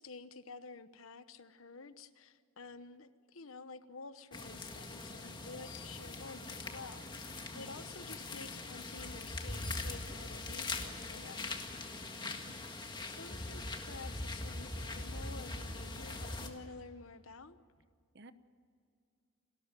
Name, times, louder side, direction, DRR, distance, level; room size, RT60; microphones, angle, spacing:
voice 1, 0.0-11.6 13.1-17.6, left 4 dB, 70° left, 12 dB, 1.0 m, -51 dB
sound 1, 4.3-16.5, left 2 dB, 20° left, 1.8 m, -42 dB
voice 2, 12.1-12.6 18.1-18.3, right 1 dB, 50° right, 12 dB, 1.0 m, -55 dB
29.5 x 13.5 x 9.2 m, 2.3 s
head